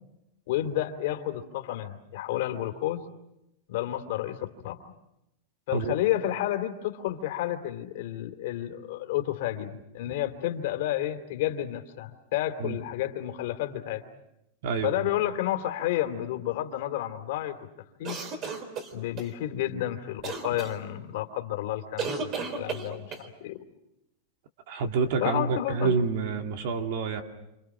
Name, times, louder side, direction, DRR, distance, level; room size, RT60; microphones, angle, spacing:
voice 1, 0.5-3.0 3.7-4.9 5.7-14.0 14.8-17.6 18.0-18.2 18.9-23.6 25.2-25.9, left 13 dB, 60° left, 6 dB, 2.8 m, -31 dB
voice 2, 14.6-15.0 24.7-27.2, right 4 dB, 65° right, 5 dB, 2.3 m, -28 dB
sound 1, 18.0-19.3 20.2-20.7 22.0-23.3, right 4 dB, 35° right, 3.8 m, -33 dB
28.5 x 27.5 x 6.2 m, 0.85 s
supercardioid pair, 155°, 0 cm